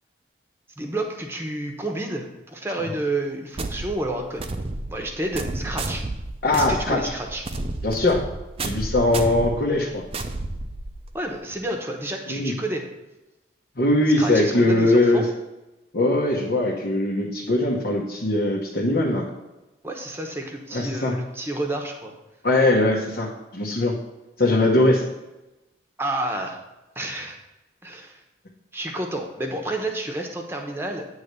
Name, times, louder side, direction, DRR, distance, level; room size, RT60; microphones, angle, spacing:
voice 1, 0.8-4.5 4.9-6.1 6.5-7.4 11.1-12.8 14.2-15.3 19.8-22.1 26.0-26.6 26.9-27.4 27.8-28.2 28.7-31.0, right 1 dB, 15° right, 2 dB, 0.9 m, -30 dB
sound 1, 3.6-11.2, right 2 dB, 30° right, 0.5 m, -31 dB
voice 2, 6.4-7.1 7.8-8.2 8.6-10.0 12.3-12.5 13.8-15.2 15.9-19.3 20.7-21.1 22.4-23.9 24.4-25.1, left 2 dB, 60° left, -3 dB, 1.0 m, -21 dB
9.4 x 3.2 x 6.6 m, 1.0 s
head